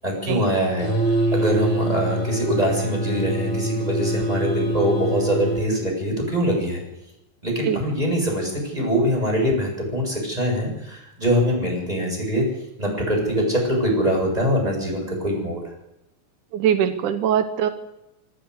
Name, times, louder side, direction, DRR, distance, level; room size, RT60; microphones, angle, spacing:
voice 1, 0.0-0.9 1.3-6.8 7.4-12.4 12.8-15.6, equal, 10° right, -1 dB, 8.0 m, -23 dB
sound 1, 0.8-5.7, right 2 dB, 15° left, 4.7 m, -25 dB
voice 2, 16.5-17.7, right 9 dB, 85° right, 9 dB, 2.6 m, -21 dB
24.5 x 13.5 x 8.1 m, 0.92 s
omnidirectional pair, 3.4 m